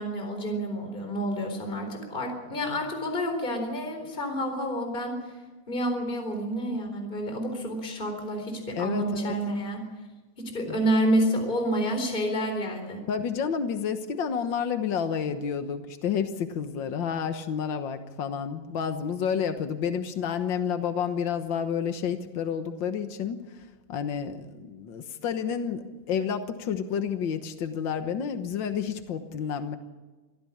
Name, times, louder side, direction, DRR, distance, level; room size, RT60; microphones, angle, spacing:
voice 1, 0.0-5.2 5.7-9.8 10.5-13.0, equal, 15° left, 5 dB, 3.9 m, -29 dB
voice 2, 8.8-9.3 10.7-10.8 13.1-23.4 23.9-29.8, left 7 dB, 85° left, 8 dB, 1.0 m, -30 dB
24.0 x 15.5 x 8.6 m, 1.2 s
omnidirectional pair, 3.9 m